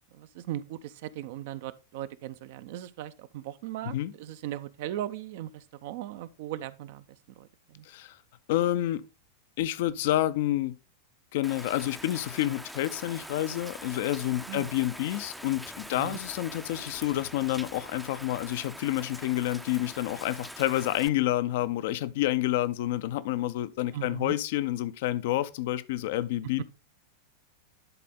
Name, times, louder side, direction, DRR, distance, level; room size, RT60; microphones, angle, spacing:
voice 1, 0.1-7.9 14.5-14.7 15.9-16.2 23.9-24.3 26.6-26.7, right 13 dB, 50° right, 0.5 m, -38 dB
voice 2, 7.9-8.2 8.5-9.0 9.6-10.7 11.3-26.6, left 14 dB, 50° left, 0.5 m, -29 dB
Rain, 11.4-21.1, equal, ahead, 0.5 m, -44 dB
11.0 x 4.1 x 3.7 m
figure-of-eight pair, 90°, 0 cm